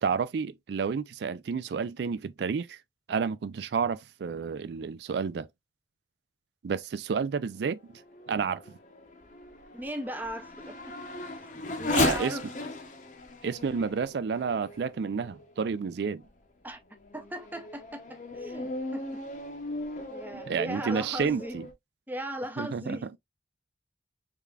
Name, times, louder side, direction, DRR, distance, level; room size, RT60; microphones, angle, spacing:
voice 1, 0.0-2.8 3.1-5.5 6.6-8.0 8.3-8.8 11.9-12.4 13.4-16.2 20.3-21.7 22.6-23.0, right 5 dB, 65° right, 0.3 m, -30 dB
Race car auto racing / Accelerating revving vroom, 7.7-15.6 16.2-16.3 16.9-21.7, left 2 dB, 45° left, 0.7 m, -36 dB
voice 2, 9.7-11.0 11.3-12.5 16.6-16.8 17.1-19.2 20.1-21.6 22.1-23.2, right 1 dB, 10° right, 0.5 m, -38 dB
3.6 x 3.3 x 2.3 m
head